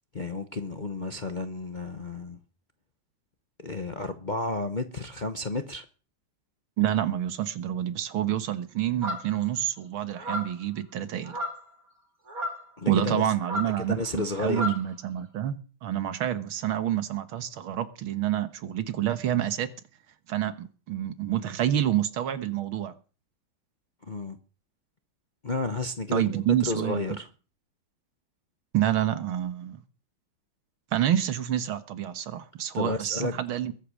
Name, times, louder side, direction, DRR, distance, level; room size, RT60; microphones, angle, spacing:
voice 1, 0.1-2.4 3.6-5.8 12.8-13.2 13.9-14.7 24.1-24.4 25.4-27.3 32.7-33.3, left 2 dB, 35° left, 0.7 m, -31 dB
voice 2, 6.8-11.4 12.9-19.7 20.3-22.9 26.1-27.2 28.7-29.8 30.9-33.7, right 11 dB, 80° right, 2.1 m, -28 dB
sound 1, 9.0-9.4 10.2-10.6 11.2-11.7 12.3-12.7 13.4-14.9, left 1 dB, 40° right, 3.0 m, -33 dB
22.0 x 8.4 x 6.4 m
omnidirectional pair, 2.3 m